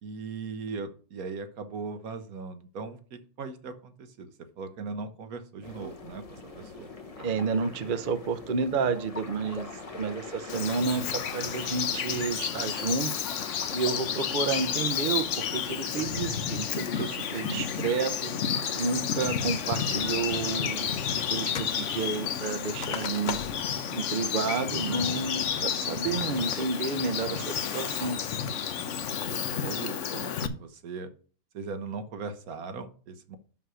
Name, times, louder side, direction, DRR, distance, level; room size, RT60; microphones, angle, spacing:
voice 1, 0.0-6.9 17.4-17.9 25.6-25.7 27.8-28.0 29.1-31.1 31.5-33.4, right 4 dB, 75° right, 9 dB, 1.4 m, -39 dB
sound 1, 5.6-21.3, left 3 dB, 25° left, 1.0 m, -43 dB
voice 2, 7.2-13.1 13.4-23.4 23.9-28.2, right 5 dB, 45° right, 10 dB, 0.7 m, -31 dB
Bird vocalization bird call bird song, 10.5-30.5, left 8 dB, 60° left, 1.0 m, -31 dB
sound 2, 21.2-21.8 22.1-23.8 24.2-24.3 24.8-25.2 25.7-26.1, left 7 dB, 80° left, 0.4 m, -38 dB
6.3 x 5.7 x 6.3 m, 0.41 s
omnidirectional pair, 1.6 m